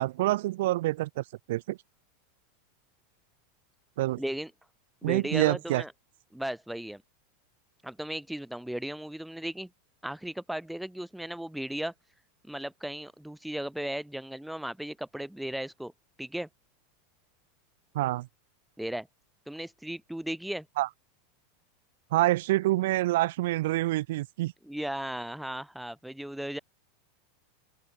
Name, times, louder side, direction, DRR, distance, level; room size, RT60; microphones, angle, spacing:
voice 1, 0.0-1.8 4.0-4.2 5.0-5.8 17.9-18.3 20.8-20.9 22.1-24.5, right 17 dB, 65° right, 1.0 m, -27 dB
voice 2, 4.2-4.5 5.0-5.9 6.3-7.0 7.8-9.7 10.0-11.9 12.5-15.9 16.2-16.5 18.8-19.1 19.5-20.7 24.7-26.6, right 1 dB, ahead, 1.7 m, -36 dB
open air
supercardioid pair, 170°, 0 cm